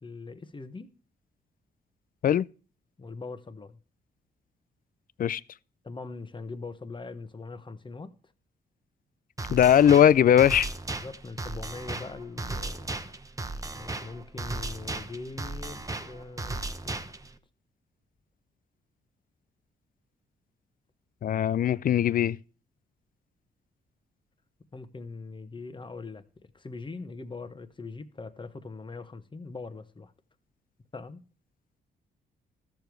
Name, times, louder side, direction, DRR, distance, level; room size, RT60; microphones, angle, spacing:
voice 1, 0.0-0.9 3.0-3.8 5.8-8.1 11.0-12.9 13.7-16.6 16.8-16.9 24.7-26.2 26.5-30.1 30.9-31.2, left 3 dB, 25° left, 1.2 m, -41 dB
sound 1, 9.4-17.4, right 2 dB, 20° right, 0.9 m, -36 dB
voice 2, 9.5-10.7 21.2-22.4, left 10 dB, 50° left, 0.4 m, -20 dB
13.5 x 6.9 x 4.7 m
cardioid pair, 75°, 18 cm